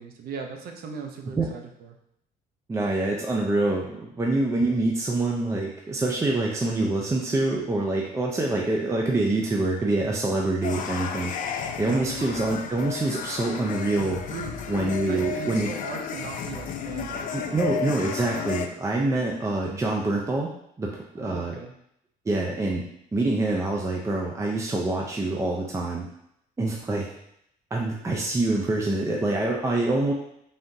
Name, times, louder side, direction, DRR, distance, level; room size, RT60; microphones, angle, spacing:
voice 1, 0.0-2.0 11.8-12.2 14.3-17.3 21.2-21.7, right 5 dB, 65° right, 3 dB, 0.7 m, -38 dB
voice 2, 2.7-11.3 11.8-14.2 14.7-15.7 17.3-20.5 20.8-21.6 22.3-22.8 23.1-26.1 26.6-27.1 27.7-30.1, right 2 dB, 15° right, -1 dB, 0.5 m, -25 dB
sound 1, 10.6-18.7, left 7 dB, 50° left, 0.4 m, -33 dB
3.7 x 3.5 x 2.7 m, 0.75 s
cardioid pair, 110°, 17 cm